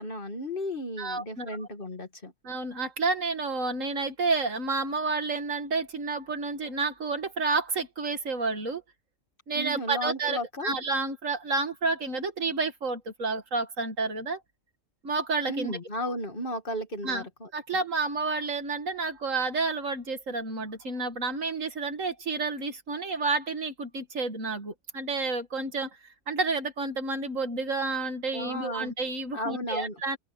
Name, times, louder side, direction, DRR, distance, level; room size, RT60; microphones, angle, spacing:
voice 1, 0.0-2.3 9.5-10.7 15.5-17.5 28.3-28.9 29.3-30.0, left 1 dB, 40° left, 2.3 m, -34 dB
voice 2, 1.0-1.5 2.4-8.8 9.5-14.4 15.0-15.8 17.0-17.3 17.5-26.0 26.3-30.2, right 3 dB, 70° right, 2.5 m, -30 dB
open air
omnidirectional pair, 1.4 m